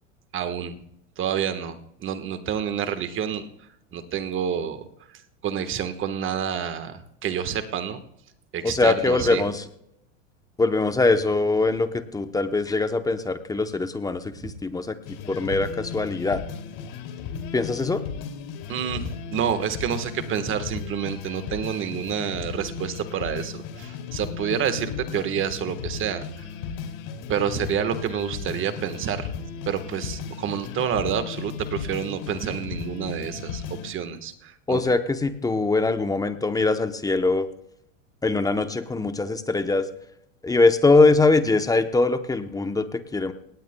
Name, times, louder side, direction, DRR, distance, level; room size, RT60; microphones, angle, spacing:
voice 1, 0.3-0.7 1.2-3.5 3.9-4.8 5.4-8.0 8.5-9.4 18.7-26.3 27.3-29.3 29.7-34.8, right 8 dB, 30° right, 9 dB, 1.4 m, -28 dB
voice 2, 8.6-9.7 10.6-15.0 15.3-16.4 17.5-18.0 34.7-37.5 38.2-39.9 40.4-43.3, left 3 dB, 10° left, 9 dB, 0.8 m, -22 dB
sound 1, 15.0-33.9, left 6 dB, 50° left, 2.7 m, -35 dB
18.5 x 17.0 x 2.2 m, 0.76 s
supercardioid pair, 125°, 39 cm